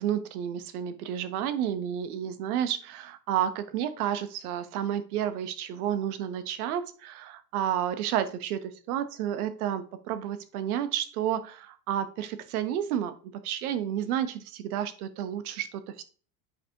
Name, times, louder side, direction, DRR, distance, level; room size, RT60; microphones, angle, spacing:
voice 1, 0.0-16.0, right 10 dB, 70° right, 11 dB, 1.2 m, -31 dB
8.2 x 5.1 x 3.5 m, 0.38 s
hypercardioid pair, 80°, 47 cm